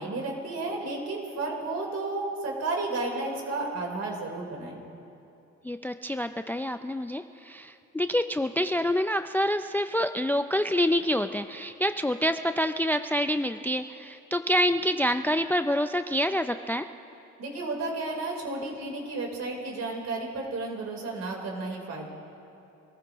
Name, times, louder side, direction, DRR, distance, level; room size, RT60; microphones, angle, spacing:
voice 1, 0.0-4.8 17.4-22.1, right 2 dB, 60° right, -1 dB, 3.9 m, -32 dB
voice 2, 5.6-16.8, equal, 5° left, 9 dB, 0.4 m, -27 dB
26.0 x 15.0 x 3.0 m, 2.7 s
cardioid pair, 90°, 30 cm